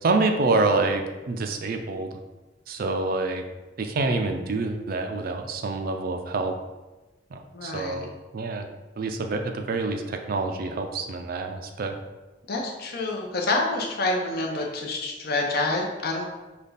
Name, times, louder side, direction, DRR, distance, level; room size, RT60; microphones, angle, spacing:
voice 1, 0.0-2.2 2.7-3.4 3.8-6.5 7.3-8.7 9.0-12.0, right 3 dB, 50° right, 6 dB, 0.4 m, -27 dB
voice 2, 7.5-8.1 12.5-16.2, left 2 dB, 50° left, 0 dB, 0.7 m, -27 dB
5.2 x 2.3 x 3.9 m, 1.1 s
head